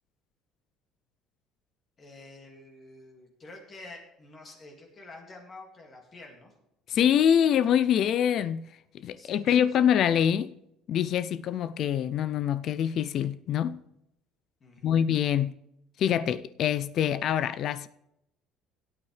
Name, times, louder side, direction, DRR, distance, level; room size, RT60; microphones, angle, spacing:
voice 1, 2.0-6.5 9.2-9.7 14.6-15.0, left 2 dB, 30° left, 2.1 m, -48 dB
voice 2, 6.9-8.6 8.9-10.5 10.9-13.8 14.8-15.5 16.0-17.9, left 9 dB, 45° left, 0.3 m, -25 dB
17.0 x 8.6 x 3.2 m
cardioid pair, 145°, 0 cm